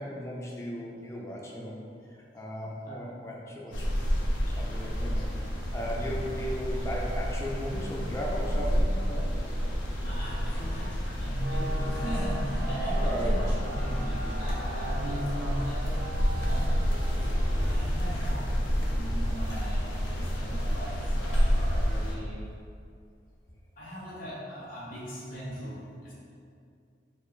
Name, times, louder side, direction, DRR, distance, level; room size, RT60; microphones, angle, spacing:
voice 1, 0.0-1.8 2.3-3.9 4.6-5.3 5.7-9.3 13.0-13.5, equal, 15° left, -3 dB, 0.3 m, -36 dB
sound 1, 3.7-22.1, equal, 80° left, 0.5 m, -29 dB
voice 2, 10.0-15.9 16.4-16.8 17.7-22.5 23.8-26.1, equal, 50° left, -9 dB, 0.9 m, -38 dB
sound 2, 11.4-18.1, right 1 dB, 60° right, 0.5 m, -41 dB
4.4 x 2.1 x 2.3 m, 2.4 s
head